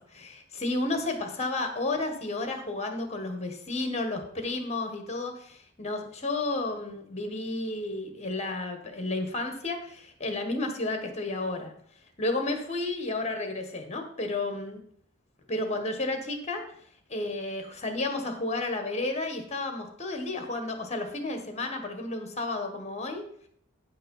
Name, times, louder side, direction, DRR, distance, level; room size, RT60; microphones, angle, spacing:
voice 1, 0.1-11.7 12.2-14.8 15.5-16.6 17.1-23.2, left 2 dB, 35° left, 5 dB, 1.5 m, -32 dB
9.7 x 5.6 x 5.5 m, 0.63 s
head